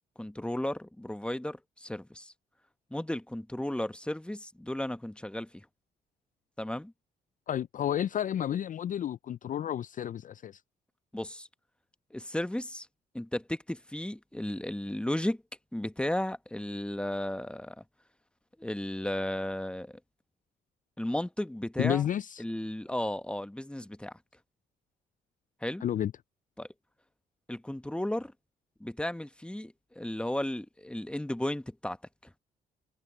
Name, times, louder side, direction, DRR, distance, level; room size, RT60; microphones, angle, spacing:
voice 1, 0.2-2.3 2.9-5.6 6.6-6.9 11.1-11.5 12.1-12.9 13.1-15.4 15.7-17.8 18.6-20.0 21.0-22.0 22.4-24.1 25.6-25.8 26.6-26.7 27.5-28.3 28.8-32.0, left 1 dB, 5° left, 1.3 m, -34 dB
voice 2, 7.5-10.6 21.8-22.4 25.8-26.1, left 10 dB, 45° left, 0.4 m, -31 dB
supercardioid pair, 60°, 19 cm